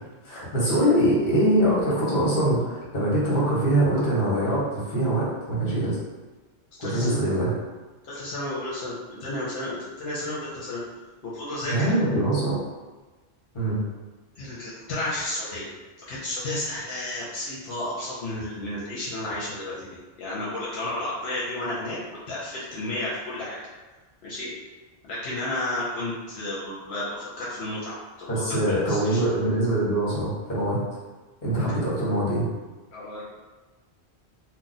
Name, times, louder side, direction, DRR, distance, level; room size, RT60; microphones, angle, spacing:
voice 1, 0.2-6.0 6.8-7.5 11.7-12.6 13.5-13.8 28.3-30.8 31.4-32.4, right 1 dB, 50° left, -6 dB, 1.1 m, -23 dB
voice 2, 6.8-7.2 8.0-10.8 11.2-11.9 14.4-15.7 16.1-19.9 20.2-23.6 24.2-24.5 25.0-29.2 32.9-33.2, left 1 dB, 75° left, -7 dB, 0.9 m, -32 dB
2.4 x 2.1 x 3.9 m, 1.2 s
omnidirectional pair, 1.1 m